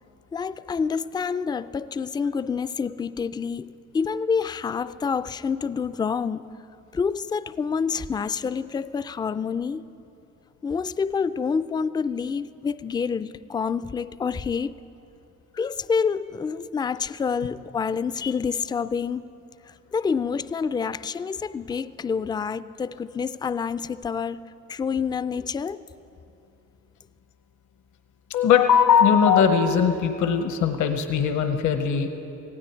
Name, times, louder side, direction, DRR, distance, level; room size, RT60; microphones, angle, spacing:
voice 1, 0.3-6.5 6.9-9.8 10.6-14.7 15.5-19.3 19.7-24.4 24.7-25.8, left 6 dB, 15° left, 0.3 m, -27 dB
voice 2, 28.3-32.1, left 7 dB, 75° left, 1.1 m, -20 dB
19.0 x 15.5 x 4.5 m
cardioid pair, 90°, 30 cm